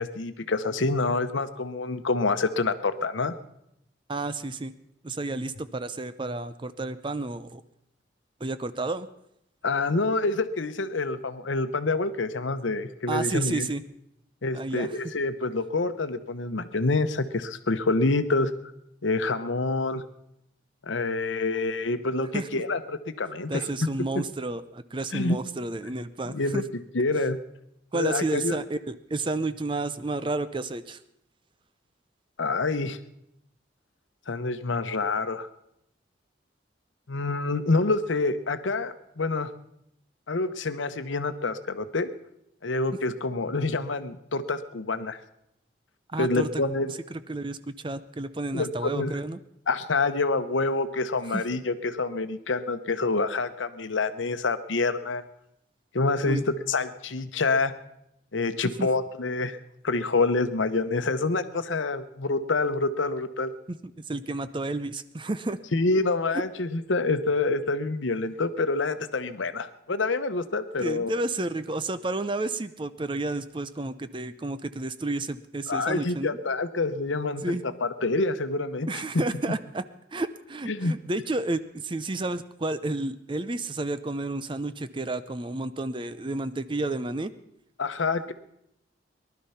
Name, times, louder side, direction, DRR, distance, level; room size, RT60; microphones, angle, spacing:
voice 1, 0.0-3.3 9.6-13.7 14.4-18.5 19.0-20.0 20.8-24.1 25.1-25.4 26.3-27.4 27.9-28.6 32.4-33.0 34.3-35.5 37.1-39.5 40.3-42.1 42.6-45.2 46.2-46.9 48.5-49.2 49.7-55.2 55.9-57.7 58.3-59.6 59.8-63.5 65.7-71.1 75.7-79.2 80.7-80.9 87.8-88.3, left 3 dB, 85° left, 11 dB, 0.9 m, -27 dB
voice 2, 4.1-4.7 5.0-7.6 8.4-9.1 13.1-13.8 14.5-14.9 22.3-22.6 23.5-26.6 27.9-31.0 46.1-46.5 47.3-49.4 51.3-51.4 56.2-56.4 58.8-58.9 63.7-63.8 64.1-65.6 70.8-76.4 77.4-77.6 78.9-79.8 80.1-87.3, right 2 dB, 25° right, 13 dB, 0.6 m, -31 dB
19.0 x 12.0 x 5.7 m, 0.79 s
head